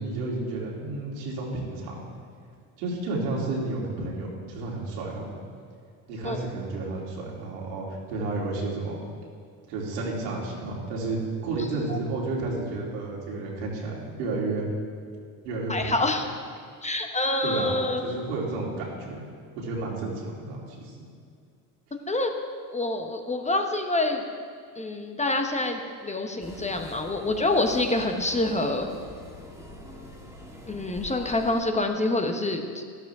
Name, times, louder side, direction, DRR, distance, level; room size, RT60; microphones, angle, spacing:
voice 1, 0.0-2.1 2.8-5.3 6.1-9.0 9.7-11.2 11.4-14.7 15.4-15.9 17.4-17.8 18.0-19.2 19.6-21.1, right 2 dB, 90° right, -3 dB, 3.3 m, -31 dB
voice 2, 15.7-16.2 16.8-18.0 22.1-22.3 22.7-24.2 24.8-28.9 30.7-32.8, left 2 dB, 15° left, 4 dB, 0.9 m, -26 dB
sound 1, 26.4-31.6, left 1 dB, 5° right, 1.8 m, -44 dB
13.0 x 12.5 x 3.6 m, 2.2 s
supercardioid pair, 105°, 47 cm